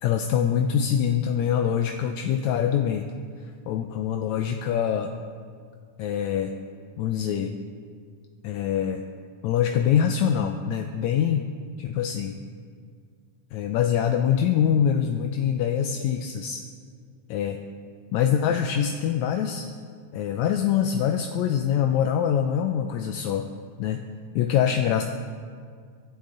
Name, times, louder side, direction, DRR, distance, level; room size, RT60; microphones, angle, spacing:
voice 1, 0.0-3.1 3.7-5.1 6.0-6.5 7.0-7.5 8.4-9.0 9.4-11.5 11.8-12.4 13.5-16.6 17.3-17.6 18.1-19.7 20.1-23.5 23.8-24.0 24.4-25.0, left 9 dB, 75° left, 5 dB, 1.9 m, -24 dB
24.5 x 12.0 x 3.9 m, 2.1 s
omnidirectional pair, 3.5 m